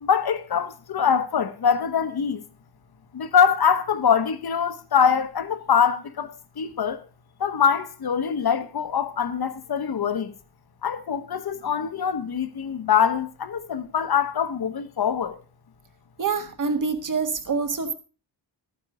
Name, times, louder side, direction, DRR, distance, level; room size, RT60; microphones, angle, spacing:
voice 1, 0.0-2.4 3.1-7.0 7.4-10.3 10.8-15.4, left 7 dB, 55° left, 1.2 m, -23 dB
voice 2, 16.2-17.9, right 5 dB, 45° right, 1.6 m, -26 dB
13.5 x 9.4 x 4.9 m
wide cardioid pair, 150°, 45 cm